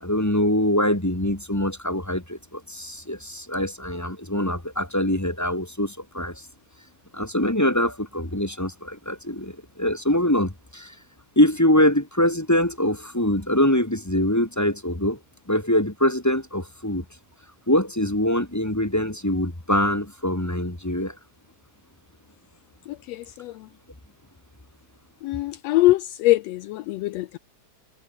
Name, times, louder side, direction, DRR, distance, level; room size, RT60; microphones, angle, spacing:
voice 1, 0.0-6.4 7.1-10.9 11.3-15.2 15.5-17.0 17.7-21.1, left 1 dB, 5° left, 1.5 m, -23 dB
voice 2, 23.1-23.5 25.2-27.4, left 17 dB, 80° left, 1.5 m, -22 dB
omnidirectional pair, 3.4 m